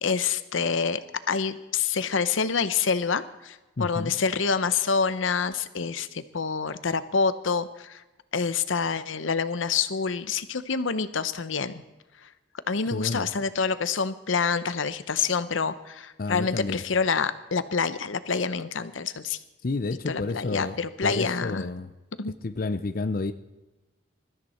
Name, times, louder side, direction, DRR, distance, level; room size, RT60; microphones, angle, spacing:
voice 1, 0.0-8.0 8.3-11.8 12.7-19.4 20.1-21.7 22.2-22.3, left 5 dB, 80° left, 13 dB, 0.8 m, -27 dB
voice 2, 3.8-4.1 12.9-13.3 16.2-16.8 19.6-21.9 22.4-23.3, left 3 dB, 45° left, 10 dB, 0.6 m, -30 dB
22.0 x 13.5 x 4.4 m, 1.1 s
head